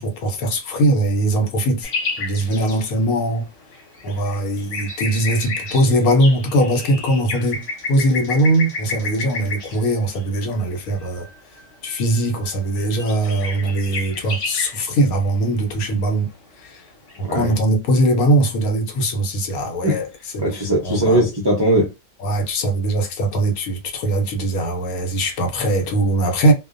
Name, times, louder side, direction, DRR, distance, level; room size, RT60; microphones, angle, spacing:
voice 1, 0.0-1.9 2.2-3.5 4.0-7.6 7.9-11.3 11.8-16.3 16.6-16.8 17.3-20.1 20.3-20.5 20.8-21.2 22.2-26.5, right 1 dB, 80° left, 1.1 m, -20 dB
sound 1, 1.8-17.6, left 3 dB, 60° left, 1.1 m, -32 dB
voice 2, 17.2-17.5 19.8-20.0 20.4-21.9, right 1 dB, 40° right, 0.3 m, -19 dB
2.5 x 2.1 x 2.4 m
omnidirectional pair, 1.5 m